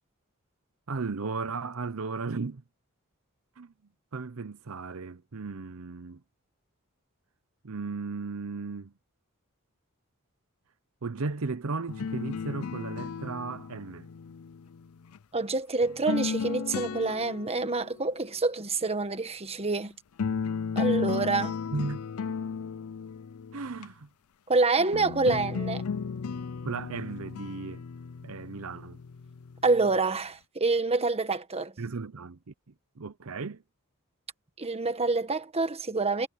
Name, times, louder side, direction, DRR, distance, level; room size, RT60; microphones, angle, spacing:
voice 1, 0.9-2.6 3.6-3.7 4.1-6.2 7.6-8.9 11.0-14.1 21.7-22.1 23.5-24.1 24.8-24.9 26.6-27.8 28.2-29.0 31.8-32.4 33.0-33.6, right 4 dB, 70° right, 0.7 m, -35 dB
sound 1, 11.9-15.2 15.8-18.0 19.8-19.9 20.2-23.8 24.9-29.9, left 6 dB, 80° left, 0.5 m, -34 dB
voice 2, 15.3-19.9 20.7-21.6 24.5-25.8 29.6-31.7 34.6-36.3, right 3 dB, 30° right, 1.4 m, -27 dB
head